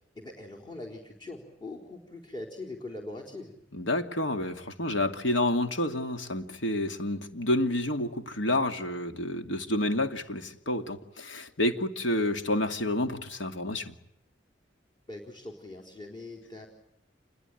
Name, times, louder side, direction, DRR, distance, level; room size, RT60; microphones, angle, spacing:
voice 1, 0.1-3.5 15.1-16.7, left 2 dB, 25° left, 0 dB, 4.2 m, -42 dB
voice 2, 3.7-13.9, left 1 dB, 90° left, 7 dB, 2.6 m, -29 dB
28.5 x 22.0 x 9.4 m, 0.79 s
head